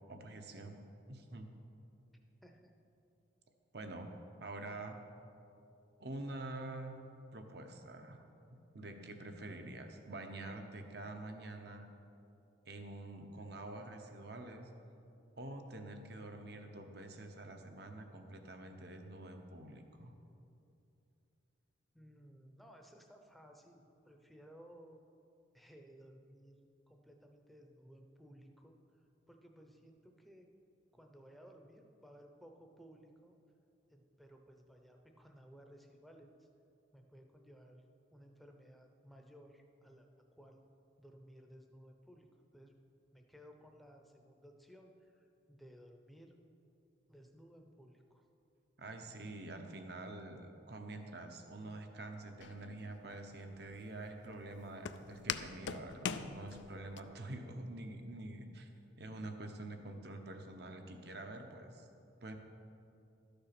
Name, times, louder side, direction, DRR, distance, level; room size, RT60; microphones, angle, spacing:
voice 1, 0.1-0.8 1.1-1.5 3.7-4.1 4.4-5.0 6.0-7.0 7.3-8.2 8.7-11.9 12.7-14.7 15.4-20.1 48.8-58.7 59.0-61.9 62.2-62.4, right 2 dB, 55° right, 5 dB, 0.9 m, -47 dB
voice 2, 2.4-2.7 21.9-25.0 25.5-30.5 30.9-33.4 33.9-36.5 36.9-40.6 41.0-42.8 43.1-46.4 47.1-48.3, equal, ahead, 3 dB, 0.7 m, -59 dB
Walk footsteps, 52.4-57.0, left 7 dB, 70° left, 0.4 m, -43 dB
12.5 x 6.9 x 5.9 m, 2.7 s
head